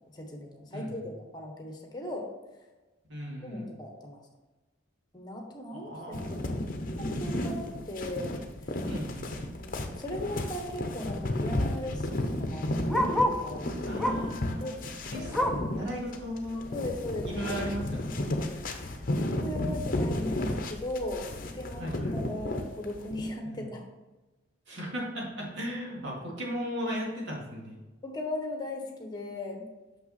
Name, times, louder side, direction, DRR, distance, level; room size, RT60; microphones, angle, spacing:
voice 1, 0.1-2.3 3.4-4.2 5.1-6.4 6.9-8.3 9.5-12.6 13.2-13.7 14.6-14.8 15.1-15.7 16.7-17.6 18.5-18.6 19.2-23.8 28.0-29.6, left 1 dB, 20° left, 2 dB, 1.1 m, -38 dB
voice 2, 0.7-1.0 3.1-3.7 5.7-6.6 8.9-9.4 13.9-14.8 15.1-16.7 17.2-18.2 21.8-22.2 23.4-23.7 24.7-27.8, equal, 65° right, -3 dB, 2.2 m, -37 dB
sound 1, 6.1-23.2, left 1 dB, 45° left, 0.8 m, -33 dB
Bark, 12.1-13.5 14.0-14.4 14.8-15.8 16.2-16.3 16.7-16.8 17.5-17.6, left 1 dB, ahead, 0.6 m, -30 dB
6.1 x 5.8 x 4.1 m, 1.1 s
head